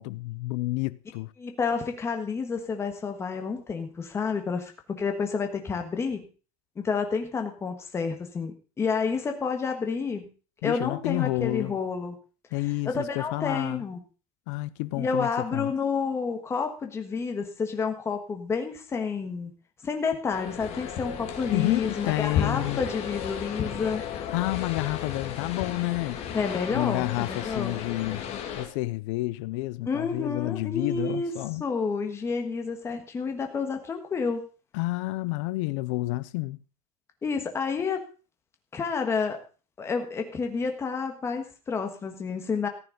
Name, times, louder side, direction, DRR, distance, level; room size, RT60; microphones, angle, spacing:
voice 1, 0.0-1.3 10.6-11.8 12.5-13.8 14.5-15.7 21.5-22.8 24.1-26.2 26.7-28.2 28.6-31.6 34.7-36.6, left 20 dB, 55° left, 0.6 m, -30 dB
voice 2, 1.4-6.2 6.8-10.3 10.6-12.2 12.8-14.0 15.0-19.5 19.8-24.0 26.3-27.8 29.9-31.3 31.6-34.4 37.2-38.0 38.7-39.4 39.8-42.7, left 5 dB, 15° left, 1.5 m, -29 dB
sound 1, 20.3-28.7, left 8 dB, 35° left, 2.2 m, -34 dB
14.5 x 9.3 x 5.2 m
supercardioid pair, 175°, 19 cm